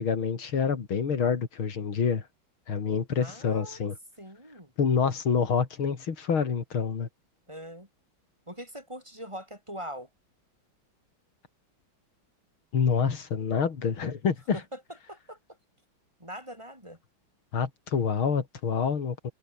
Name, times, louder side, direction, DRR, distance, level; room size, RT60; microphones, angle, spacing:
voice 1, 0.0-2.2 2.7-4.0 4.8-7.1 12.7-14.6 17.5-19.3, left 6 dB, 85° left, 3.4 m, -27 dB
voice 2, 3.2-3.8 4.2-4.7 7.5-7.9 8.5-10.1 14.5-14.8 15.1-15.4 16.2-17.0, equal, 15° right, 7.0 m, -42 dB
omnidirectional pair, 2.2 m